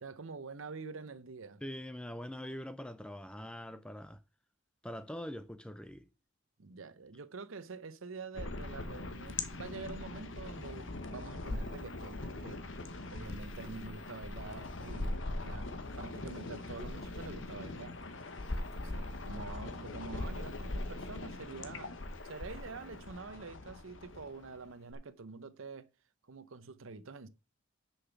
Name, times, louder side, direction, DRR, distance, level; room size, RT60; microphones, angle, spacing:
voice 1, 0.0-1.6 6.6-12.6 13.1-18.0 18.5-21.9 22.2-25.9 26.3-27.3, right 4 dB, 70° right, 0.7 m, -46 dB
voice 2, 1.6-4.2 4.8-6.1, equal, 5° left, 0.5 m, -43 dB
sound 1, 8.3-24.9, left 2 dB, 60° left, 1.1 m, -41 dB
6.7 x 5.7 x 5.8 m
head